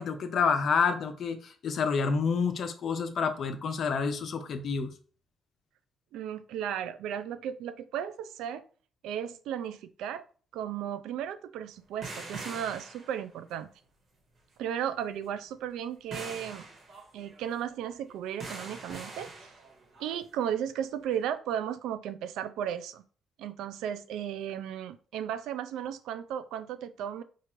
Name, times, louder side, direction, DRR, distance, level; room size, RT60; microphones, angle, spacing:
voice 1, 0.0-4.9, left 5 dB, 60° left, 0.6 m, -28 dB
voice 2, 6.1-8.6 9.0-10.2 10.5-13.7 14.6-16.7 17.1-19.5 20.0-23.0 23.4-27.2, right 9 dB, 90° right, 0.3 m, -35 dB
sound 1, 12.0-13.6 16.1-20.1 21.1-21.2, right 3 dB, 55° right, 1.2 m, -43 dB
4.4 x 2.4 x 3.0 m
cardioid pair, 90°, 0 cm